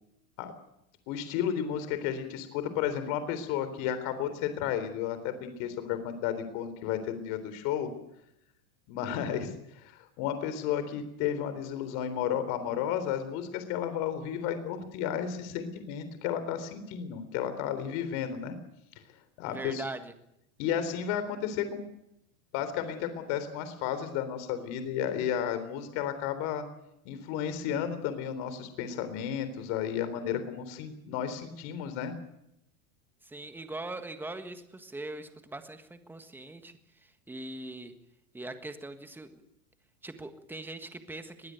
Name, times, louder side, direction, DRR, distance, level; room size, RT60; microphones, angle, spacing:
voice 1, 1.1-7.9 8.9-9.5 9.8-18.5 19.4-19.8 20.6-21.8 22.5-26.6 27.1-32.2, left 9 dB, 50° left, 11 dB, 3.8 m, -33 dB
voice 2, 19.4-20.1 33.2-38.0 38.3-39.4 40.0-41.5, right 2 dB, 5° right, 8 dB, 1.5 m, -41 dB
21.5 x 16.0 x 9.3 m, 0.81 s
supercardioid pair, 145°, 41 cm